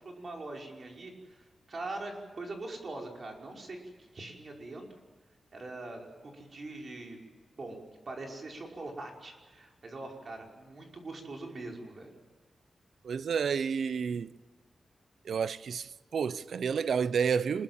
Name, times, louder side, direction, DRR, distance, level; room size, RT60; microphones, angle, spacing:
voice 1, 0.0-4.9 5.5-7.2 7.6-12.1, right 2 dB, 40° right, 5.4 m, -42 dB
voice 2, 13.0-14.3 15.2-17.6, right 6 dB, 75° right, 0.8 m, -30 dB
26.5 x 22.0 x 7.5 m
wide cardioid pair, 140°, 0 cm